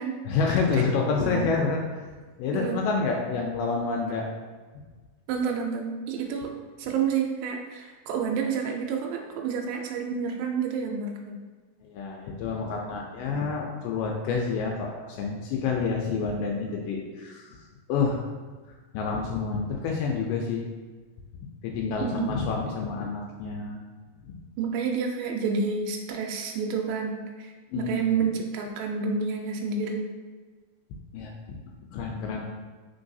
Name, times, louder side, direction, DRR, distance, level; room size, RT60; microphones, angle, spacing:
voice 1, 0.3-1.8 2.4-4.3 11.8-17.6 17.9-18.2 18.9-20.7 21.6-23.8 24.2-24.3 27.7-27.9 31.1-31.6 31.9-32.4, left 4 dB, 80° left, 0 dB, 2.1 m, -28 dB
voice 2, 1.2-1.7 2.5-2.9 5.3-6.5 6.8-11.3 22.0-22.4 24.6-30.1, right 5 dB, 85° right, 1 dB, 2.3 m, -29 dB
4.6 x 3.8 x 2.6 m, 1.4 s
omnidirectional pair, 4.0 m